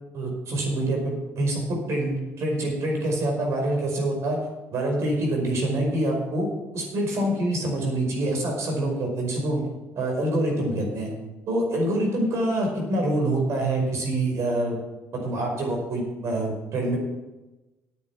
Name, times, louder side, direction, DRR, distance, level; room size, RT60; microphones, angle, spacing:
voice 1, 0.1-4.4 4.7-6.5 6.7-9.6 9.9-11.1 11.5-14.8 15.1-17.0, right 1 dB, 60° right, 0 dB, 5.2 m, -26 dB
9.8 x 8.7 x 7.3 m, 1.1 s
cardioid pair, 90°, 5 cm